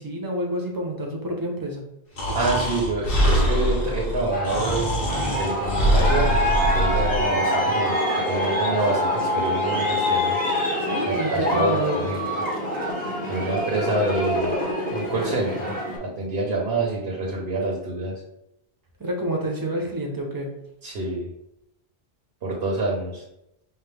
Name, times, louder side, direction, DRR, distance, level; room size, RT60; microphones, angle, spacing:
voice 1, 0.0-1.8 10.8-12.0 19.0-20.5, equal, 20° right, 0 dB, 0.7 m, -28 dB
Breathing, 2.2-7.3, equal, 55° left, 1.2 m, -23 dB
voice 2, 2.3-10.4 11.0-12.3 13.3-14.5 14.9-15.7 16.0-18.2 20.8-21.3 22.4-23.2, right 2 dB, 70° right, -3 dB, 1.1 m, -27 dB
Aircraft, 4.3-16.0, equal, 10° left, 1.0 m, -25 dB
5.8 x 2.1 x 3.4 m, 0.82 s
omnidirectional pair, 1.1 m